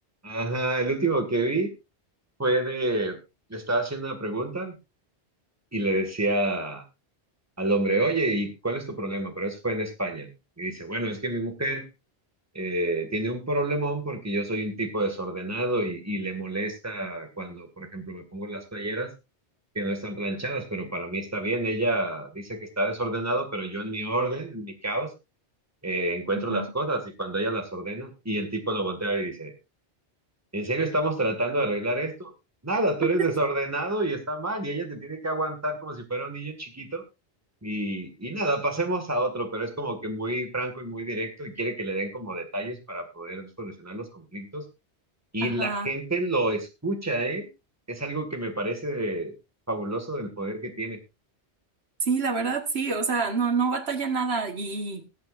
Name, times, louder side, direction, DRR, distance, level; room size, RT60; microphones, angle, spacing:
voice 1, 0.2-1.7 2.4-3.2 3.5-4.8 5.7-6.8 7.6-10.3 10.6-11.9 12.5-19.1 19.8-25.1 25.8-29.5 30.5-32.3 32.6-37.0 37.6-44.6 45.3-47.5 47.9-49.3 49.7-51.0, right 2 dB, 15° right, 5 dB, 2.0 m, -28 dB
voice 2, 26.3-26.7 45.4-45.9 52.0-55.0, right 4 dB, 65° right, 7 dB, 1.8 m, -27 dB
21.0 x 8.3 x 2.5 m, 0.25 s
omnidirectional pair, 1.1 m